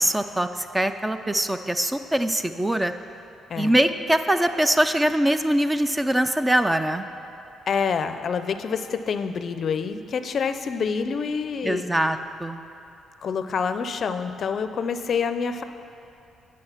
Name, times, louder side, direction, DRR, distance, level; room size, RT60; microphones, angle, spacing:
voice 1, 0.0-2.9 3.6-7.1 11.6-12.6, right 1 dB, 10° right, 9 dB, 0.4 m, -23 dB
voice 2, 7.7-11.9 13.2-15.6, left 6 dB, 55° left, 10 dB, 0.5 m, -27 dB
9.9 x 6.3 x 5.7 m, 2.8 s
cardioid pair, 90°, 0 cm